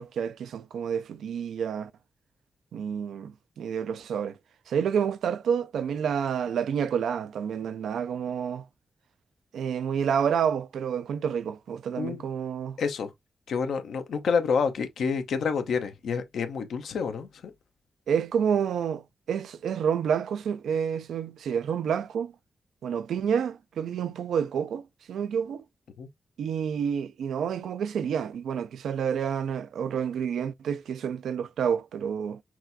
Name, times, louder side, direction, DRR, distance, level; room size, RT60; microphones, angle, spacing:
voice 1, 0.0-1.9 2.7-4.4 4.7-8.7 9.5-12.8 18.1-22.3 22.8-25.6 26.4-32.4, right 7 dB, 85° right, 0.3 m, -29 dB
voice 2, 12.8-13.1 13.5-17.5 26.0-26.1, left 5 dB, 85° left, 0.7 m, -28 dB
5.9 x 2.3 x 2.6 m
cardioid pair, 50°, 0 cm